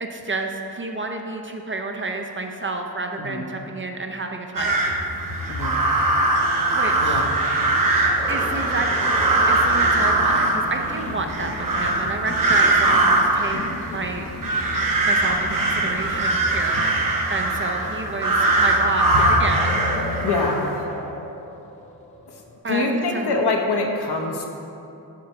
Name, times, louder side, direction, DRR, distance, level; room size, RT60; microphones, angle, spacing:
voice 1, 0.0-4.8 6.7-7.3 8.3-8.9 9.5-13.6 13.9-14.6 15.1-17.0 17.3-19.8 22.6-23.3, right 3 dB, 30° right, 3 dB, 0.4 m, -30 dB
sound 1, 4.6-20.8, right 2 dB, 55° right, 0.8 m, -21 dB
sound 2, 6.5-22.6, left 1 dB, 20° left, 0.9 m, -38 dB
voice 2, 7.0-7.3 20.2-20.6 22.3-24.5, left 3 dB, 75° left, 2 dB, 0.9 m, -25 dB
sound 3, 9.5-16.3, left 3 dB, 45° left, 0.5 m, -37 dB
7.4 x 4.3 x 5.8 m, 2.8 s
wide cardioid pair, 180°, 39 cm